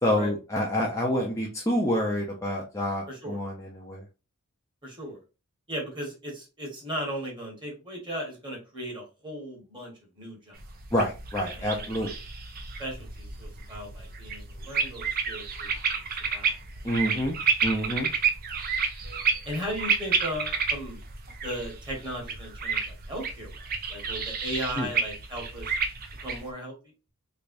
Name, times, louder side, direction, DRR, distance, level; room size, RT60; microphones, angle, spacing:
voice 1, 0.0-4.0 10.9-12.1 16.8-18.1 24.8-24.9, equal, 15° left, -2 dB, 0.6 m, -28 dB
voice 2, 3.1-3.4 4.8-5.2 5.7-10.6 11.5-11.9 12.8-16.1 16.3-16.5 19.4-21.0 21.4-23.5 23.9-25.8 26.2-26.7, equal, 20° right, 0 dB, 1.5 m, -37 dB
sound 1, 10.6-26.5, right 5 dB, 45° right, 0.6 m, -31 dB
3.4 x 3.3 x 2.6 m, 0.31 s
head